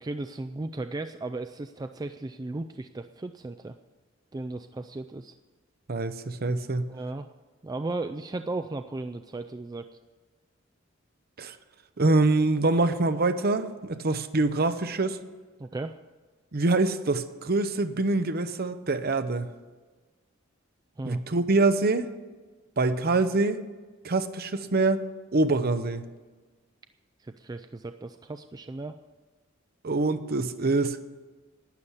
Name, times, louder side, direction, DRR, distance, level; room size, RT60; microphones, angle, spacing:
voice 1, 0.0-3.7 4.3-5.3 6.9-7.3 7.6-9.9 15.6-16.0 21.0-21.2 27.2-29.0, right 2 dB, 20° right, 8 dB, 0.4 m, -35 dB
voice 2, 5.9-6.9 11.4-11.6 12.0-15.2 16.5-19.5 21.0-22.1 22.8-23.6 24.0-25.0 25.3-26.0 29.8-31.0, right 2 dB, 50° right, 10 dB, 0.8 m, -25 dB
12.0 x 9.7 x 7.2 m, 1.3 s
head